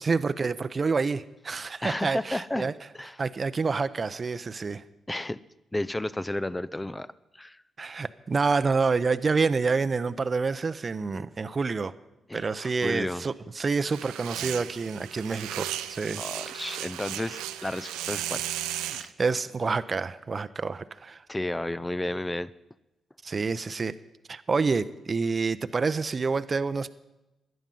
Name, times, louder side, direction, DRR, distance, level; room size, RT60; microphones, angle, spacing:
voice 1, 0.0-2.7 3.2-4.8 7.8-11.9 12.3-16.2 19.2-21.2 23.2-23.9 24.3-26.9, right 4 dB, 45° right, 13 dB, 0.7 m, -28 dB
voice 2, 1.8-2.7 2.9-3.2 5.1-5.4 5.7-7.6 11.2-11.3 12.3-13.2 16.2-18.4 18.9-19.1 21.3-22.5, left 1 dB, 15° left, 17 dB, 0.6 m, -32 dB
sound 1, 13.9-19.1, right 12 dB, 80° right, 0.6 m, -35 dB
17.0 x 11.5 x 5.5 m, 0.95 s
hypercardioid pair, 40°, 0 cm